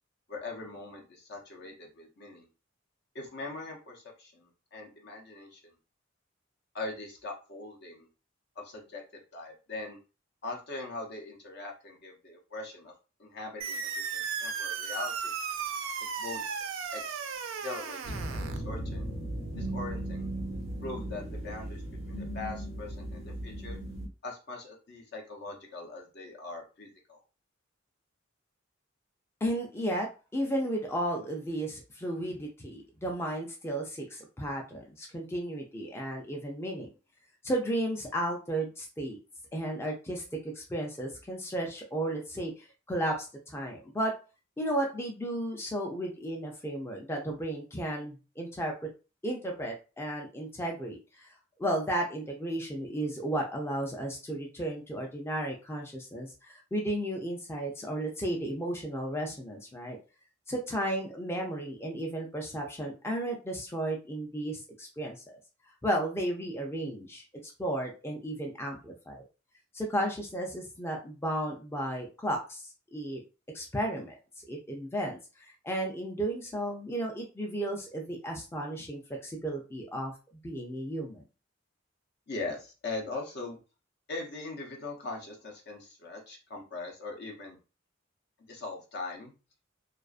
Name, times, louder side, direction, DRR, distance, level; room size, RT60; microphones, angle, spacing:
voice 1, 0.3-2.5 3.1-5.6 6.7-8.1 8.6-9.0 9.3-10.0 10.4-12.9 13.2-15.3 16.2-16.4 16.9-17.2 17.6-19.1 19.5-20.3 20.8-23.8 24.2-27.2 82.3-83.6 84.1-87.6 88.4-89.3, left 3 dB, 60° left, 1 dB, 0.7 m, -41 dB
sound 1, 13.6-18.6, right 6 dB, 80° right, 0.4 m, -35 dB
sound 2, 18.0-24.1, right 1 dB, 75° left, 1.1 m, -37 dB
voice 2, 29.4-36.9 37.4-39.2 39.5-40.2 40.5-44.1 44.6-48.7 49.2-51.3 51.6-60.0 60.5-65.4 65.8-69.2 69.7-73.2 73.5-74.2 74.5-80.1 80.4-81.2, right 1 dB, 15° left, 0 dB, 0.4 m, -34 dB
2.4 x 2.3 x 2.4 m, 0.32 s
head